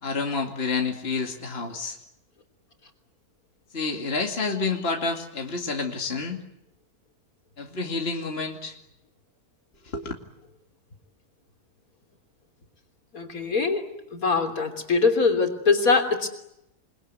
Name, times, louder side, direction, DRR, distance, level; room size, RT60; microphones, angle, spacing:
voice 1, 0.0-2.0 3.7-6.4 7.6-8.7 9.9-10.1, left 4 dB, 40° left, 2 dB, 2.6 m, -29 dB
voice 2, 13.1-13.9 14.1-16.3, left 4 dB, 65° left, 4 dB, 3.8 m, -22 dB
28.5 x 22.0 x 9.6 m, 0.84 s
omnidirectional pair, 1.6 m